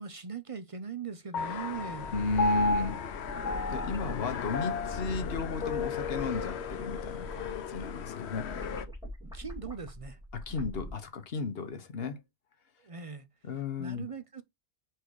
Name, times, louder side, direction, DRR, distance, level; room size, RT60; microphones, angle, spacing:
voice 1, 0.0-2.1 9.3-10.2 12.8-13.3 13.8-14.4, right 6 dB, 40° right, 0.6 m, -40 dB
Piano, 1.3-8.0, left 2 dB, 50° left, 0.7 m, -35 dB
sound 1, 1.4-8.9, left 9 dB, 85° left, 1.0 m, -39 dB
sound 2, 2.0-11.0, equal, 5° right, 2.3 m, -43 dB
voice 2, 2.1-3.0 3.7-8.5 10.3-12.2 13.4-14.0, left 4 dB, 70° left, 1.2 m, -34 dB
4.9 x 4.7 x 4.6 m
omnidirectional pair, 1.1 m